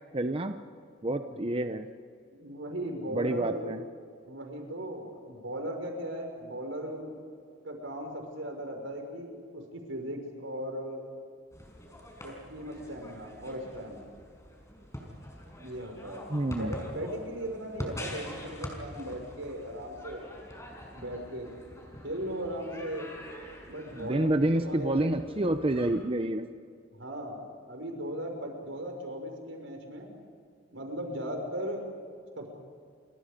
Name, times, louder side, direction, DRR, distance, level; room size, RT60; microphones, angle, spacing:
voice 1, 0.1-0.6 1.0-1.8 3.1-3.8 16.3-16.7 23.9-26.5, right 1 dB, 30° right, 8 dB, 0.9 m, -28 dB
voice 2, 1.3-1.7 2.3-3.8 4.2-7.1 7.6-11.0 12.2-14.0 15.6-20.2 20.9-21.5 22.0-23.1 23.7-25.1 26.9-30.1 30.7-31.8 32.4-32.5, equal, 90° right, 3 dB, 5.9 m, -38 dB
sound 1, 11.5-26.0, left 1 dB, 15° left, 5.6 m, -45 dB
30.0 x 25.0 x 5.3 m, 2.2 s
head